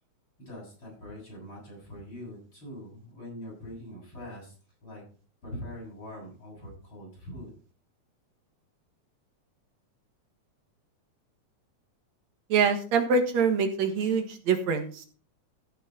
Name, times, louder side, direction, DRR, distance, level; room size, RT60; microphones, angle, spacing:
voice 1, 0.4-4.6 4.8-5.0 5.4-7.5, left 1 dB, 40° left, -2 dB, 7.7 m, -43 dB
voice 2, 12.5-15.1, right 5 dB, 65° right, 6 dB, 2.8 m, -25 dB
15.0 x 7.1 x 4.3 m, 0.39 s
omnidirectional pair, 3.4 m